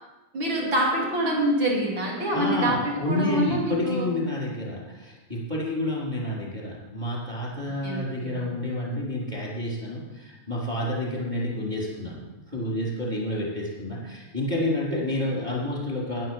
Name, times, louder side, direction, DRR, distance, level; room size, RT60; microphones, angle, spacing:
voice 1, 0.3-4.1 7.8-8.4 14.9-15.0, right 1 dB, 30° right, -1 dB, 2.8 m, -26 dB
voice 2, 2.3-12.2 12.5-16.2, left 1 dB, 10° right, -4 dB, 2.9 m, -29 dB
11.0 x 10.5 x 7.5 m, 1.1 s
omnidirectional pair, 5.3 m